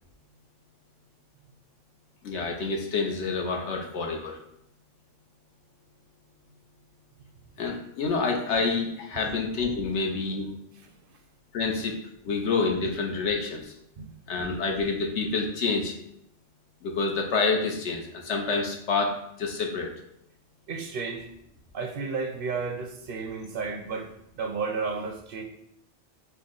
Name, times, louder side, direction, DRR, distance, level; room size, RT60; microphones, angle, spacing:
voice 1, 2.2-4.4 7.6-10.5 11.5-12.0 12.2-13.7 14.3-15.9 16.8-19.9, left 4 dB, 90° left, 2 dB, 1.1 m, -28 dB
voice 2, 20.7-21.3 21.7-24.1 24.4-25.4, right 4 dB, 60° right, 5 dB, 0.6 m, -32 dB
5.5 x 2.2 x 3.7 m, 0.75 s
omnidirectional pair, 1.2 m